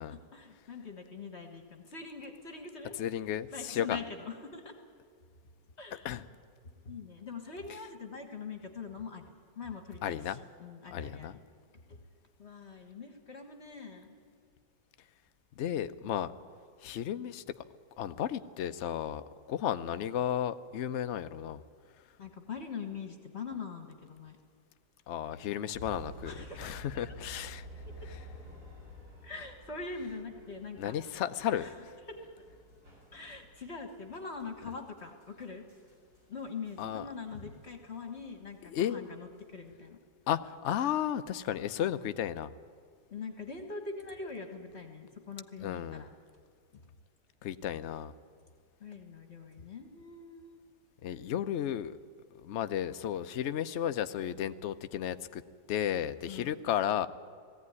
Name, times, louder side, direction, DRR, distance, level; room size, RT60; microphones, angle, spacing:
voice 1, 0.0-3.0 3.5-4.8 5.8-6.1 6.6-11.4 11.9-12.0 12.4-14.2 19.8-19.9 22.2-24.4 26.2-27.0 28.0-28.1 29.2-30.9 31.6-31.7 32.1-32.3 33.1-35.7 36.3-40.0 43.1-46.1 46.7-46.8 48.8-50.6 56.3-56.6, left 4 dB, 40° left, 4 dB, 1.7 m, -43 dB
voice 2, 3.0-4.0 6.0-6.3 10.0-10.4 10.9-11.4 15.6-16.3 16.8-17.7 18.0-21.6 25.1-27.7 30.8-31.7 36.8-37.0 38.6-39.0 40.3-42.5 45.6-46.0 47.4-48.1 51.0-52.0 52.3-55.4 55.7-57.1, left 10 dB, 60° left, 11 dB, 0.7 m, -33 dB
sound 1, 25.7-39.6, equal, 45° right, 7.7 m, -52 dB
19.0 x 15.5 x 9.6 m, 2.1 s
omnidirectional pair, 1.9 m